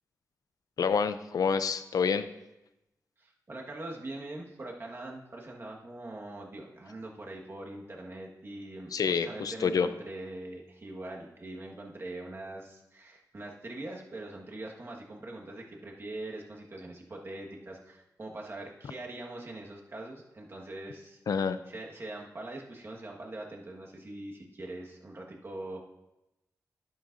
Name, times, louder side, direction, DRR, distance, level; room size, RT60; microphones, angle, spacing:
voice 1, 0.8-2.3 8.9-9.9 21.3-21.6, left 6 dB, 70° left, 12 dB, 0.5 m, -27 dB
voice 2, 3.2-21.2 21.7-25.8, right 2 dB, 40° right, -1 dB, 1.6 m, -42 dB
11.0 x 10.5 x 2.6 m, 0.93 s
wide cardioid pair, 100°, 6 cm